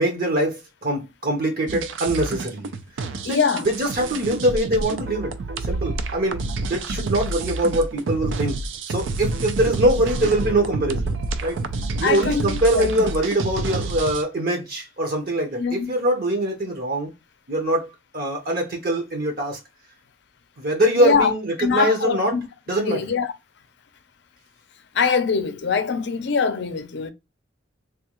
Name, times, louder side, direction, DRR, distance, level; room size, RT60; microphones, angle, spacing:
voice 1, 0.0-2.7 3.0-5.3 5.6-6.4 6.7-8.6 8.9-11.1 11.4-11.6 12.0-17.1 17.5-19.6 20.6-22.3 22.7-23.1, right 1 dB, 50° right, 0.8 m, -23 dB
sound 1, 1.7-14.2, right 3 dB, 75° right, 0.4 m, -28 dB
voice 2, 3.2-3.7 12.0-12.9 15.6-15.9 21.0-21.3 21.6-22.5 22.9-23.3 24.9-27.1, left 5 dB, 60° left, 0.5 m, -22 dB
3.6 x 2.3 x 2.9 m
head